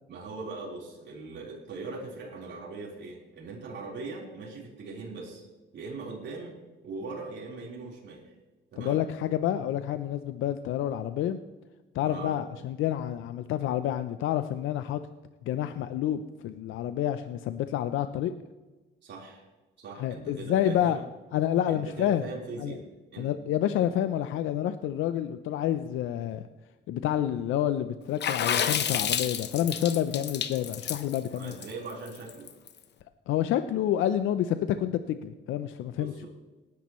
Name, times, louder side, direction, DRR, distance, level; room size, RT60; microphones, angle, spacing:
voice 1, 0.1-5.4 5.7-6.6 6.8-8.3 8.7-9.0 12.0-12.4 19.0-19.4 19.8-21.1 21.7-22.9 23.1-23.3 31.3-32.5 36.0-36.3, right 3 dB, 65° right, -4 dB, 4.0 m, -40 dB
voice 2, 8.8-11.4 11.9-15.0 15.4-18.3 20.0-21.0 21.3-22.2 22.6-22.8 23.2-26.4 26.9-31.5 33.3-36.3, left 11 dB, 85° left, 10 dB, 0.6 m, -28 dB
Water / Splash splatter, 28.2-32.7, left 8 dB, 60° left, 1.0 m, -30 dB
19.0 x 10.5 x 3.1 m, 1.2 s
cardioid pair, 90°, 20 cm